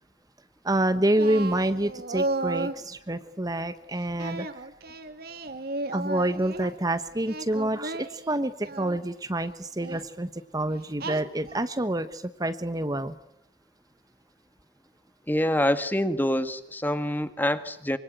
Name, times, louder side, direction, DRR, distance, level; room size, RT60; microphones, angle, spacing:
voice 1, 0.6-4.5 5.9-13.2, right 1 dB, 20° right, 11 dB, 1.2 m, -27 dB
Singing, 1.2-2.8 4.2-6.7 7.2-9.0 9.8-10.0 11.0-11.6, right 2 dB, 60° right, 2.3 m, -34 dB
voice 2, 15.3-18.0, left 1 dB, 10° left, 11 dB, 1.7 m, -26 dB
25.5 x 25.0 x 9.3 m, 0.72 s
head